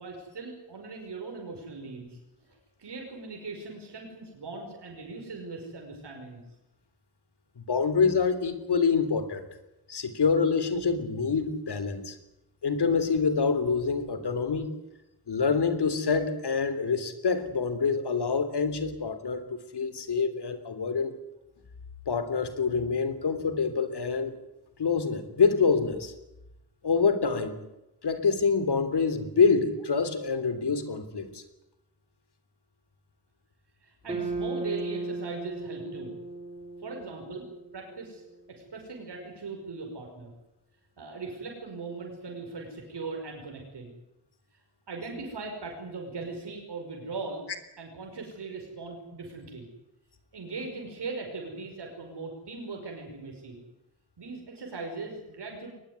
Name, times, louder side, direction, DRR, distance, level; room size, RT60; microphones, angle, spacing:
voice 1, 0.0-2.2 2.8-6.4 33.8-36.1 36.8-37.5 37.7-38.2 38.5-40.3 41.0-43.9 44.9-47.4 47.8-49.7 50.3-53.6 54.2-55.7, right 3 dB, 90° right, 1 dB, 5.4 m, -39 dB
voice 2, 7.6-9.4 9.9-12.2 12.6-14.7 15.3-19.4 19.7-21.1 22.1-24.4 24.8-26.1 26.8-27.6 28.0-31.4, left 5 dB, 80° left, 11 dB, 3.3 m, -26 dB
sound 1, 34.1-38.4, right 3 dB, 15° right, 5.2 m, -36 dB
22.0 x 20.5 x 9.6 m, 0.90 s
wide cardioid pair, 155°, 40 cm